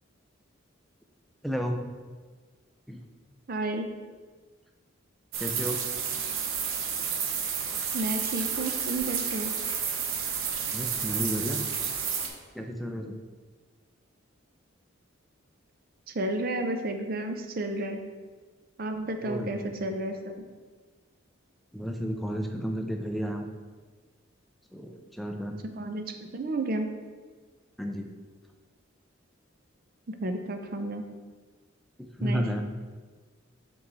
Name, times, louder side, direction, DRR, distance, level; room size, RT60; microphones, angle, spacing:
voice 1, 1.4-1.8 2.9-3.0 5.4-5.8 10.7-11.6 12.5-13.2 19.2-19.9 21.7-23.5 24.7-25.6 27.8-28.1 32.0-32.6, equal, ahead, 3 dB, 0.4 m, -32 dB
voice 2, 3.5-3.9 7.9-9.5 16.1-18.0 18.8-20.5 25.8-26.0 26.3-26.9 30.1-31.0 32.2-32.6, right 2 dB, 45° right, 6 dB, 0.6 m, -31 dB
sound 1, 5.3-12.3, right 7 dB, 85° right, 0.8 m, -31 dB
5.1 x 4.7 x 4.1 m, 1.4 s
head